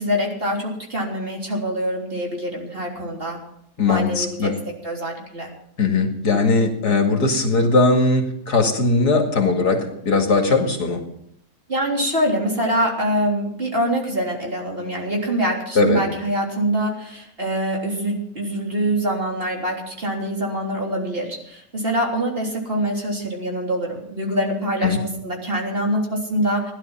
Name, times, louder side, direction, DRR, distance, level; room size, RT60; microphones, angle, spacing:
voice 1, 0.0-3.4 3.9-4.5 4.8-5.5 11.7-26.7, equal, 35° right, -1 dB, 3.7 m, -24 dB
voice 2, 3.8-4.5 5.8-11.0 15.7-16.0 24.8-25.0, left 3 dB, 75° left, 3 dB, 2.8 m, -19 dB
16.5 x 11.5 x 5.7 m, 0.72 s
omnidirectional pair, 1.7 m